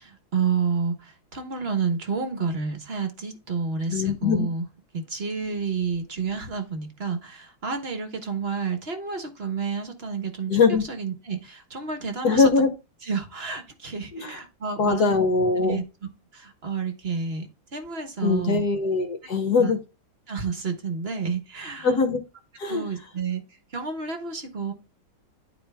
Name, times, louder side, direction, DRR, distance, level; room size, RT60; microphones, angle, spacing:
voice 1, 0.0-4.6 4.9-10.6 10.9-12.5 13.0-15.2 15.6-15.8 16.3-18.6 19.6-19.7 20.3-22.0 22.7-23.4 23.7-24.7, right 5 dB, 35° right, 1.1 m, -30 dB
voice 2, 3.9-4.5 10.5-10.8 12.2-12.7 14.1-14.4 14.8-15.8 18.2-19.8 21.8-22.2 22.6-22.8, left 4 dB, 60° left, 1.2 m, -22 dB
10.5 x 4.5 x 3.4 m
omnidirectional pair, 2.3 m